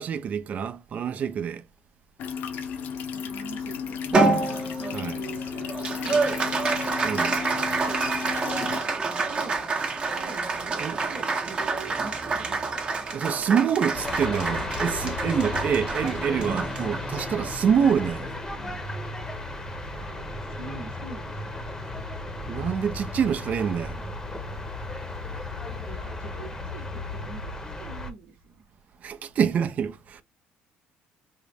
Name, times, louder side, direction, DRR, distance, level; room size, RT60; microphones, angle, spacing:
voice 1, 0.0-1.6 4.9-5.2 7.0-7.3 10.8-11.0 13.1-18.3 22.5-24.0 29.0-30.2, right 7 dB, 45° right, 0.5 m, -26 dB
sound 1, 2.2-8.8, left 6 dB, 65° left, 0.7 m, -34 dB
voice 2, 3.1-4.3 4.8-6.9 7.3-8.0 8.4-8.8 9.3-9.6 10.1-10.5 11.0-12.7 19.9-22.0 25.8-27.5 27.8-28.6, right 5 dB, 60° right, 0.9 m, -44 dB
Applause, 4.1-18.8, right 3 dB, 30° right, 0.8 m, -28 dB
sound 2, 13.9-28.1, left 2 dB, 15° left, 0.8 m, -34 dB
3.7 x 2.0 x 3.3 m
cardioid pair, 95°, 3 cm